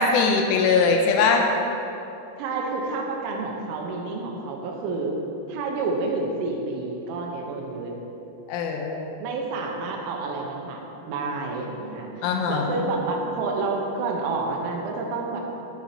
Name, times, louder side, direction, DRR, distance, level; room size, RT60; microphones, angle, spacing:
voice 1, 0.0-1.5 8.5-9.1 12.2-12.8, left 4 dB, 85° left, 2 dB, 3.2 m, -21 dB
voice 2, 2.4-5.1 5.5-7.9 9.2-10.8 11.1-15.4, right 3 dB, 80° right, 0 dB, 3.4 m, -29 dB
13.5 x 10.5 x 2.9 m, 3.0 s
omnidirectional pair, 5.6 m